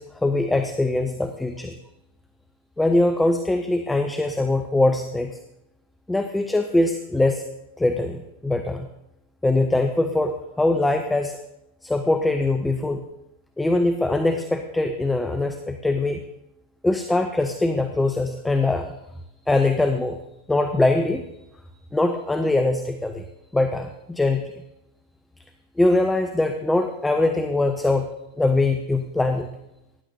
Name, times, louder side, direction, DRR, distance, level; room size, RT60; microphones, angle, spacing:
voice 1, 0.0-1.7 2.8-5.3 6.1-7.4 7.8-8.9 9.4-11.4 11.8-13.0 13.6-16.2 16.8-18.9 19.5-20.2 20.5-21.2 21.9-23.2 23.5-24.5 25.8-28.1 28.4-29.5, left 2 dB, 5° left, 7 dB, 0.7 m, -22 dB
18.5 x 10.0 x 2.7 m, 0.89 s
figure-of-eight pair, 90°, 0 cm